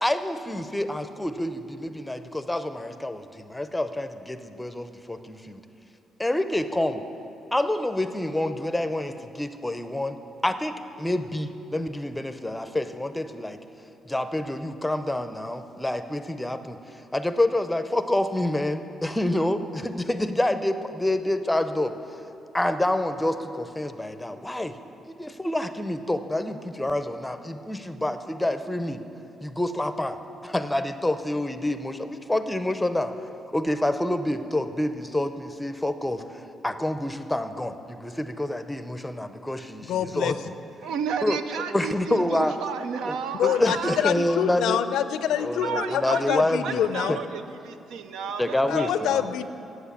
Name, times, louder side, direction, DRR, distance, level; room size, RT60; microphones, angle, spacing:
voice 1, 0.0-5.6 6.2-7.0 7.5-10.2 10.4-13.6 14.1-16.8 17.1-21.9 22.5-24.8 25.1-29.0 29.4-33.1 33.5-40.5 41.2-41.4 41.7-42.5 43.0-43.2 43.4-44.8 45.4-47.2 48.4-49.3, left 1 dB, 10° left, 9 dB, 0.6 m, -27 dB
voice 2, 39.9-40.3 43.4-47.2 48.7-49.5, left 9 dB, 80° left, 12 dB, 0.4 m, -26 dB
voice 3, 40.8-44.0 45.6-49.1, right 6 dB, 85° right, 9 dB, 0.6 m, -32 dB
8.0 x 7.9 x 8.4 m, 2.8 s
cardioid pair, 90°, 0 cm